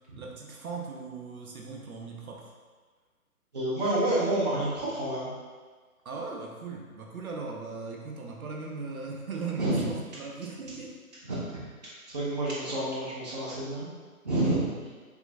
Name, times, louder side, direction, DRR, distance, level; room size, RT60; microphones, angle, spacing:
voice 1, 0.2-2.5 6.0-11.0, right 4 dB, 70° right, 0 dB, 0.7 m, -38 dB
voice 2, 3.5-5.3 9.6-9.9 11.3-13.9 14.2-14.8, right 1 dB, 30° right, -8 dB, 0.5 m, -29 dB
3.6 x 2.5 x 2.5 m, 1.5 s
figure-of-eight pair, 145°, 44 cm